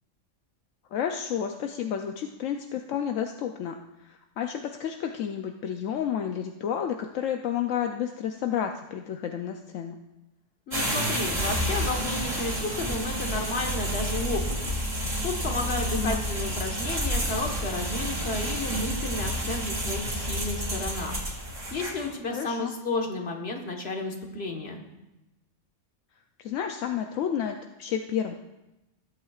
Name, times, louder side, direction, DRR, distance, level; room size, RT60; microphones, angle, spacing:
voice 1, 0.9-3.7 4.0-10.0 15.9-16.2 22.3-22.7 26.4-28.3, left 8 dB, 80° left, 4 dB, 1.0 m, -31 dB
voice 2, 10.7-21.2 21.7-24.8, left 2 dB, 55° left, 2 dB, 1.6 m, -32 dB
sound 1, 10.7-22.1, equal, 35° right, 2.2 m, -30 dB
19.5 x 8.2 x 2.4 m, 0.97 s
omnidirectional pair, 1.3 m